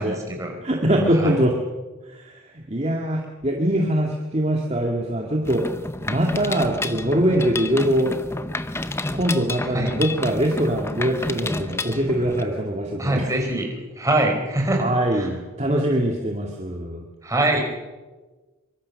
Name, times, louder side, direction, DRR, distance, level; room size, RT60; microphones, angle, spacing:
voice 1, 0.0-0.5 0.9-1.4 9.7-9.9 13.0-15.3 17.2-17.6, right 1 dB, 15° right, 1 dB, 4.3 m, -24 dB
voice 2, 0.6-1.5 2.1-2.4 2.7-5.6 6.1-8.1 9.1-13.3 14.8-17.0, right 1 dB, 30° right, 0 dB, 2.2 m, -23 dB
Mechanisms, 5.4-12.4, left 2 dB, 10° left, 0.8 m, -30 dB
24.5 x 23.5 x 6.5 m, 1.3 s
head